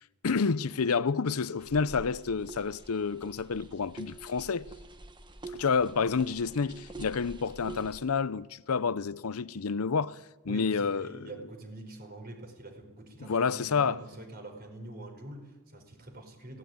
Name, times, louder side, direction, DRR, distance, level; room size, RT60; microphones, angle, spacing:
voice 1, 0.2-4.7 5.5-10.2 10.4-11.1 13.2-14.0, left 5 dB, 80° left, 0.6 m, -29 dB
sound 1, 1.6-8.0, right 2 dB, 20° right, 1.2 m, -47 dB
voice 2, 10.5-16.6, right 2 dB, 45° right, 4.8 m, -45 dB
22.5 x 18.0 x 9.5 m
head